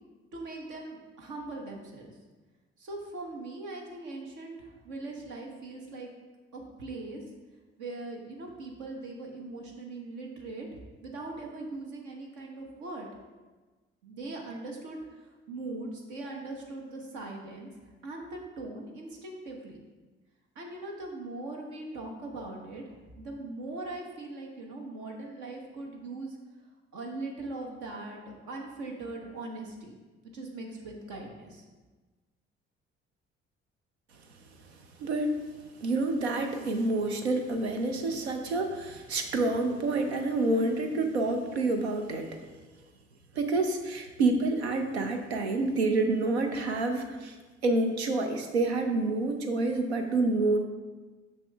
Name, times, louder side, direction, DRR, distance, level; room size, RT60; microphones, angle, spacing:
voice 1, 0.3-2.1 2.8-6.1 6.5-7.2 7.8-10.7 11.0-13.1 14.0-17.7 18.0-19.8 20.5-26.4 26.9-30.0 30.3-31.6, right 2 dB, 70° right, 0 dB, 1.2 m, -40 dB
voice 2, 35.0-35.4 35.8-42.4 43.3-47.4 47.6-50.6, right 2 dB, 90° right, 5 dB, 0.5 m, -28 dB
6.1 x 5.9 x 3.3 m, 1.3 s
hypercardioid pair, 45°, 32 cm